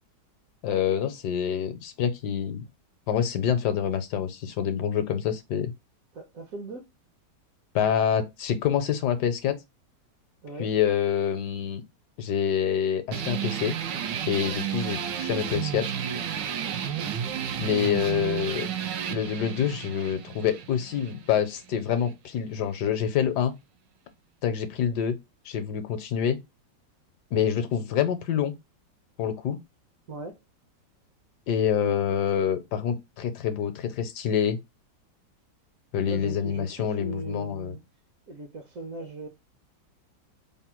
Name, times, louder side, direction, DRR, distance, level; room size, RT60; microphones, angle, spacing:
voice 1, 0.6-2.6 3.1-5.7 7.7-9.6 10.6-11.8 12.2-13.8 14.3-15.9 17.6-18.7 19.1-23.5 24.4-25.1 25.4-26.4 27.3-28.5 29.2-29.6 31.5-34.6 35.9-37.7, left 8 dB, 75° left, 1.1 m, -26 dB
voice 2, 6.1-6.9 10.4-10.7 16.6-17.2 30.1-30.4 36.0-37.8 38.3-39.3, right 2 dB, 60° right, 1.0 m, -39 dB
sound 1, 13.1-22.2, right 8 dB, 85° right, 1.3 m, -32 dB
3.4 x 2.2 x 4.3 m
omnidirectional pair, 1.9 m